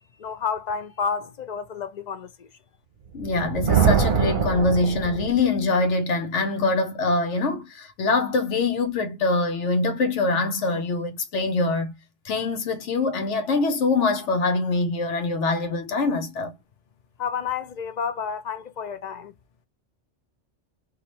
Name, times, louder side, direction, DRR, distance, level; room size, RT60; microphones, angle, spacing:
voice 1, 0.2-2.5 17.2-19.3, left 6 dB, 50° left, 0.5 m, -30 dB
voice 2, 3.1-11.9 12.2-16.5, left 3 dB, 80° left, 1.2 m, -24 dB
Thunder, 3.2-5.6, right 7 dB, 50° right, 0.8 m, -23 dB
4.8 x 2.5 x 2.9 m
omnidirectional pair, 1.2 m